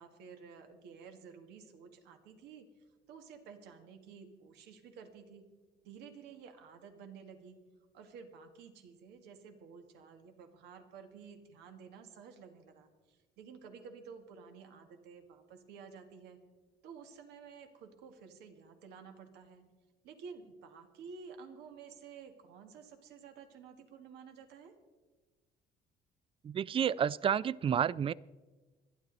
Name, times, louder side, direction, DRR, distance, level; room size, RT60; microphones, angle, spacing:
voice 1, 0.0-2.7 3.1-5.5 5.8-7.6 7.9-16.4 16.8-19.6 20.0-24.8, right 6 dB, 85° right, 6 dB, 1.8 m, -52 dB
voice 2, 26.4-28.1, right 8 dB, 35° right, 21 dB, 0.4 m, -30 dB
25.5 x 9.9 x 4.0 m, 1.3 s
cardioid pair, 110°, 17 cm